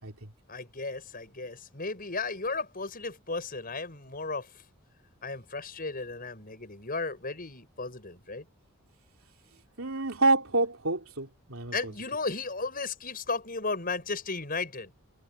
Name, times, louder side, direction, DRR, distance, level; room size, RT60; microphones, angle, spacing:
voice 1, 0.5-4.5 5.2-8.5 11.7-14.9, left 3 dB, 45° left, 6.3 m, -35 dB
voice 2, 9.8-11.7, right 2 dB, 75° right, 3.4 m, -27 dB
head